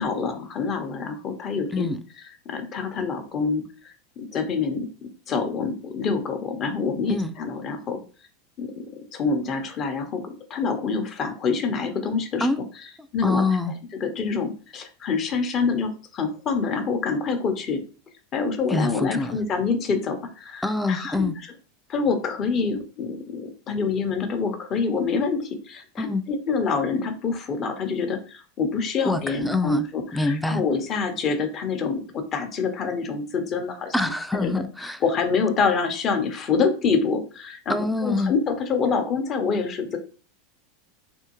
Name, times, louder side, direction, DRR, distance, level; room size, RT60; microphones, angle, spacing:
voice 1, 0.0-1.9 2.4-4.9 5.3-8.0 8.6-12.5 13.1-13.4 14.0-17.8 18.3-21.3 21.9-33.9 34.4-34.5 35.0-37.8 38.0-40.0, left 5 dB, 40° left, 0.8 m, -26 dB
voice 2, 1.7-2.0 7.1-7.3 12.4-12.6 13.2-13.7 18.7-19.4 20.6-21.4 26.0-26.2 29.0-29.9 30.1-30.6 33.9-35.0 37.7-38.3, left 2 dB, 5° left, 0.4 m, -25 dB
3.5 x 2.6 x 2.9 m
hypercardioid pair, 110°, 0 cm